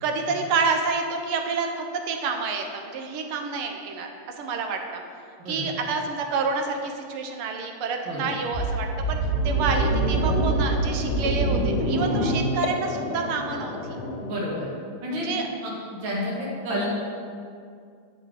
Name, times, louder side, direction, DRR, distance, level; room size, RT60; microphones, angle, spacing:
voice 1, 0.0-4.1 4.4-5.0 5.5-9.2 9.4-14.0 15.1-15.4, right 4 dB, 90° right, 4 dB, 1.8 m, -28 dB
sound 1, 8.5-14.2, right 2 dB, 45° left, 2.2 m, -25 dB
sound 2, 9.6-14.7, left 5 dB, 85° left, 0.8 m, -36 dB
voice 2, 14.2-14.7 15.0-15.4 15.6-15.7 16.0-16.9, equal, 65° right, -5 dB, 2.5 m, -30 dB
9.8 x 6.7 x 4.8 m, 2.3 s
omnidirectional pair, 2.3 m